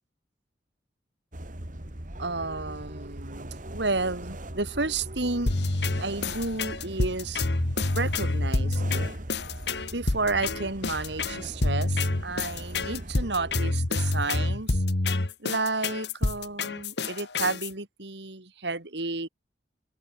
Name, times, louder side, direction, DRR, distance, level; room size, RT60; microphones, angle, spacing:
sound 1, 1.3-13.6, right 1 dB, 45° right, 2.8 m, -40 dB
voice 1, 2.2-5.6 6.0-7.5 7.8-9.1 9.9-14.8 15.4-19.3, right 3 dB, 75° right, 3.1 m, -31 dB
sound 2, 5.5-17.7, left 2 dB, 70° left, 1.5 m, -27 dB
head